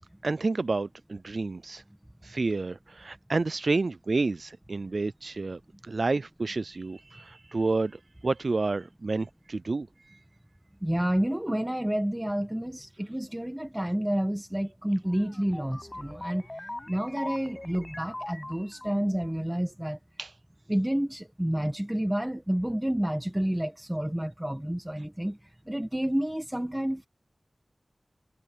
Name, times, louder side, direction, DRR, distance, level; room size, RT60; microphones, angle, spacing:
voice 1, 0.2-1.8 2.2-5.6 5.9-9.9 20.2-20.3, right 3 dB, 65° right, 0.3 m, -29 dB
voice 2, 10.8-16.5 16.9-20.0 20.7-25.4 25.7-27.1, right 1 dB, 10° right, 1.3 m, -29 dB
sound 1, 15.1-19.2, left 1 dB, 25° left, 7.0 m, -41 dB
wide cardioid pair, 80°, 0 cm